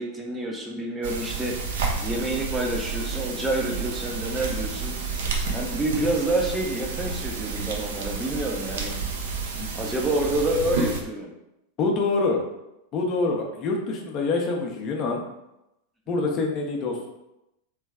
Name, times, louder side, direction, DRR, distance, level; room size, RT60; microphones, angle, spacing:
voice 1, 0.0-1.7 2.0-5.0 5.5-8.9 9.7-11.3, right 1 dB, 10° right, 0 dB, 0.6 m, -28 dB
sound 1, 1.0-11.0, right 4 dB, 60° right, 0.6 m, -30 dB
voice 2, 11.8-12.4 12.9-15.2 16.1-17.1, left 3 dB, 35° left, 1 dB, 0.7 m, -25 dB
3.2 x 3.1 x 3.5 m, 0.88 s
figure-of-eight pair, 90°, 0 cm